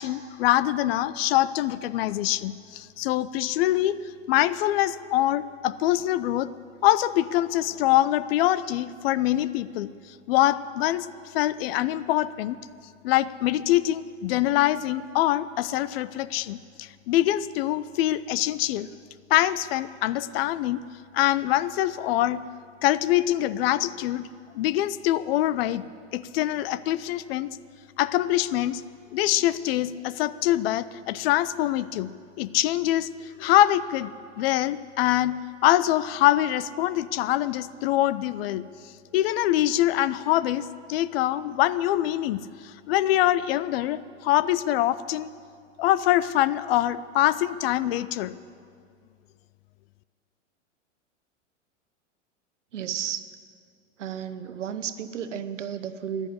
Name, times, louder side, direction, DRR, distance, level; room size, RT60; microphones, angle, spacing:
voice 1, 0.0-4.0 4.3-6.5 6.8-9.9 10.3-11.1 11.3-12.6 13.0-18.9 19.3-20.8 21.1-22.5 22.8-24.3 24.5-25.8 26.1-27.5 28.0-28.8 29.1-32.1 32.4-34.1 34.4-38.7 39.1-45.3 45.8-48.4, left 14 dB, 55° left, 17 dB, 0.6 m, -24 dB
voice 2, 52.7-53.3 54.0-56.3, right 8 dB, 80° right, 11 dB, 1.0 m, -33 dB
14.5 x 10.5 x 8.6 m, 2.3 s
hypercardioid pair, 95°, 36 cm